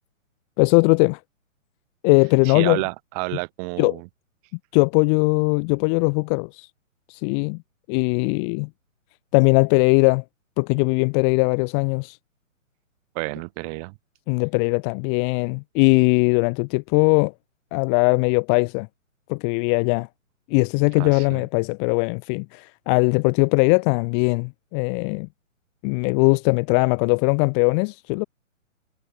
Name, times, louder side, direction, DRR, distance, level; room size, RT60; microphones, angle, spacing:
voice 1, 0.6-1.2 2.0-2.8 3.8-4.0 4.7-6.7 7.1-7.6 7.9-8.7 9.3-10.2 10.6-12.2 14.3-17.3 17.7-18.9 19.3-20.1 20.5-25.3 25.8-28.2, left 40 dB or more, 20° left, 1.4 m, -20 dB
voice 2, 2.4-4.1 13.1-13.9 21.0-21.4, right 32 dB, 30° right, 8.0 m, -30 dB
hypercardioid pair, 150°, 40 cm